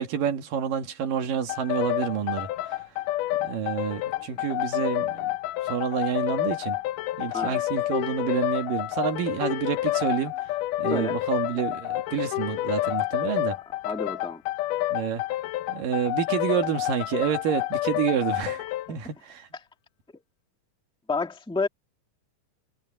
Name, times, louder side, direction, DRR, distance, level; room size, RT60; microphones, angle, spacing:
voice 1, 0.0-2.8 3.4-5.4 5.6-6.8 7.2-10.4 10.8-13.6 14.9-15.2 15.7-19.5, right 8 dB, 85° right, 3.7 m, -29 dB
sound 1, 1.5-18.9, left 15 dB, 80° left, 2.2 m, -29 dB
voice 2, 13.8-14.4 21.1-21.7, left 4 dB, 5° left, 0.9 m, -29 dB
omnidirectional pair, 3.8 m